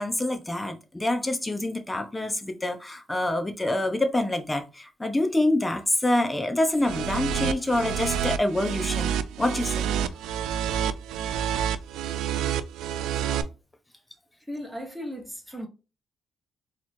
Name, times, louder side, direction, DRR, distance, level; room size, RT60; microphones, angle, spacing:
voice 1, 0.0-9.9, left 1 dB, 15° left, 0.8 m, -26 dB
sound 1, 6.8-13.4, right 9 dB, 90° right, 0.4 m, -28 dB
voice 2, 14.5-15.7, equal, ahead, 1.4 m, -36 dB
3.9 x 3.1 x 2.7 m
cardioid pair, 90°, 0 cm